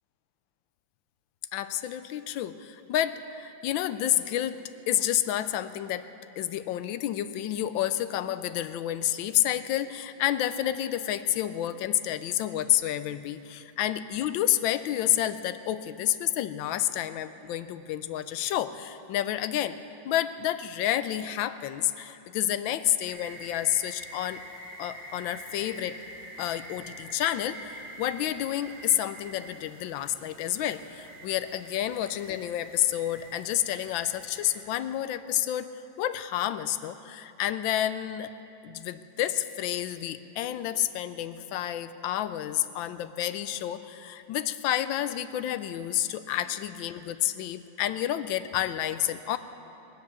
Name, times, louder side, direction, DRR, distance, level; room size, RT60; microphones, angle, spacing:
voice 1, 1.5-6.1 6.4-19.8 20.0-24.4 24.8-26.0 26.4-38.3 38.6-49.4, left 12 dB, 85° left, 12 dB, 1.3 m, -29 dB
sound 1, 23.1-34.6, right 1 dB, 75° right, 2.8 m, -46 dB
22.0 x 7.8 x 6.7 m, 2.8 s
omnidirectional pair, 2.1 m